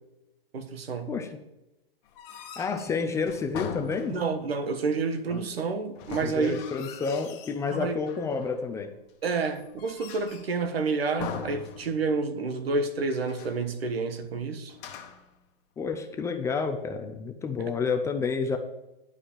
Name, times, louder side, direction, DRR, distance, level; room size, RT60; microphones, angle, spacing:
voice 1, 0.5-1.1 4.1-6.6 7.7-8.0 9.2-14.7 17.6-17.7, right 4 dB, 80° right, 1.4 m, -29 dB
sound 1, 2.1-4.5 6.0-7.6 8.1-8.7 9.2-10.6 11.2-12.3 12.6-12.7 13.1-13.7 14.7-15.3, left 7 dB, 35° left, 1.3 m, -41 dB
voice 2, 2.6-4.2 5.3-5.4 6.2-8.9 15.8-18.6, left 5 dB, 10° left, 0.5 m, -30 dB
11.0 x 4.9 x 7.3 m
hypercardioid pair, 140°, 30 cm